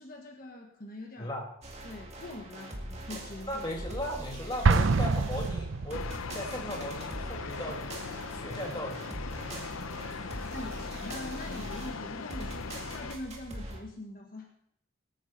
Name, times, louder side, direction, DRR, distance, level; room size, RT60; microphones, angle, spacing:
voice 1, 0.0-1.3 1.8-3.6 10.5-14.5, left 1 dB, 45° left, 1 dB, 1.5 m, -43 dB
voice 2, 1.2-1.5 3.5-7.9 8.3-9.0, equal, 20° left, 0 dB, 2.1 m, -37 dB
sound 1, 1.6-13.8, right 1 dB, 30° right, 2.0 m, -42 dB
Explosion, 4.6-6.3, right 4 dB, 75° right, 0.6 m, -25 dB
sound 2, 5.9-13.2, left 5 dB, 85° left, 0.7 m, -40 dB
20.5 x 9.2 x 4.3 m, 0.74 s
head